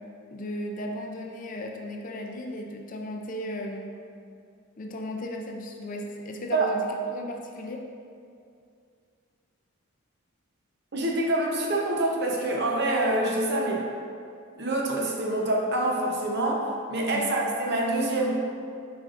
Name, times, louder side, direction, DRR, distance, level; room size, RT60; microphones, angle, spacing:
voice 1, 0.3-3.9 4.8-7.8 17.1-17.3, left 1 dB, 40° left, 2 dB, 0.4 m, -35 dB
voice 2, 10.9-13.9 14.6-18.3, right 1 dB, 50° right, -1 dB, 0.8 m, -26 dB
7.5 x 5.1 x 2.5 m, 2.4 s
head